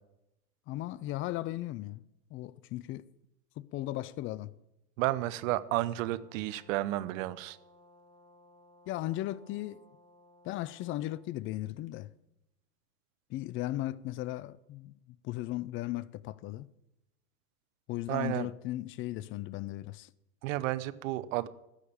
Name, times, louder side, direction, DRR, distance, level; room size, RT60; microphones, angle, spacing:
voice 1, 0.7-2.0 2.3-3.1 3.6-4.5 8.9-9.8 10.4-12.1 13.3-14.9 15.2-16.7 17.9-20.1, left 15 dB, 30° left, 0.4 m, -36 dB
voice 2, 5.0-7.6 18.1-18.5 20.4-21.5, right 16 dB, 60° right, 0.8 m, -32 dB
Brass instrument, 5.1-11.3, left 1 dB, 10° left, 2.0 m, -61 dB
13.5 x 6.6 x 8.7 m
hypercardioid pair, 95°, 46 cm